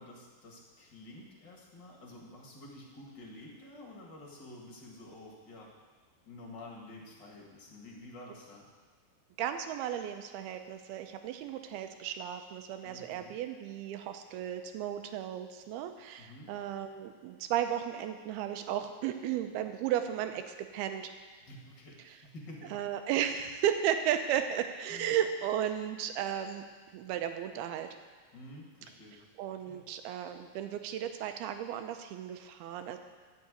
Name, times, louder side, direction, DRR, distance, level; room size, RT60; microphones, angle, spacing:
voice 1, 0.0-5.7 6.2-8.7 12.8-13.4 16.2-16.5 21.4-22.8 24.9-25.2 28.3-29.2 29.7-29.8, left 1 dB, 40° left, -2 dB, 1.7 m, -50 dB
voice 2, 9.4-21.1 22.7-26.6 26.9-27.9 29.4-33.0, right 10 dB, 85° right, 7 dB, 2.6 m, -34 dB
12.5 x 5.8 x 8.1 m, 1.5 s
omnidirectional pair, 4.5 m